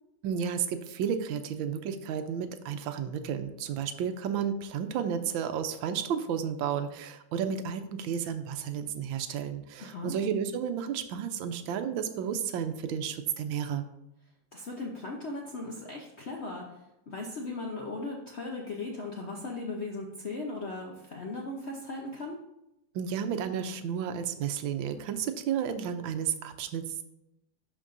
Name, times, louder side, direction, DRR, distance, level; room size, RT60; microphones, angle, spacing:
voice 1, 0.2-13.9 22.9-27.0, right 8 dB, 80° right, 9 dB, 1.4 m, -32 dB
voice 2, 9.8-10.2 14.5-16.7 17.1-22.4, left 2 dB, 70° left, -1 dB, 0.6 m, -37 dB
11.5 x 4.5 x 2.6 m, 0.89 s
omnidirectional pair, 2.2 m